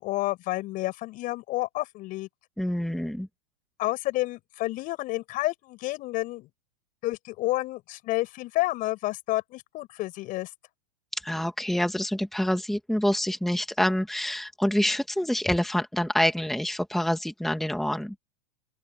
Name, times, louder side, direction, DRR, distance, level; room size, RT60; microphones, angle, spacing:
voice 1, 0.0-2.3 3.8-6.5 7.0-10.5, left 18 dB, 45° left, 7.4 m, -30 dB
voice 2, 2.6-3.3 11.1-18.1, left 1 dB, ahead, 2.5 m, -27 dB
open air
hypercardioid pair, 110°, 20 cm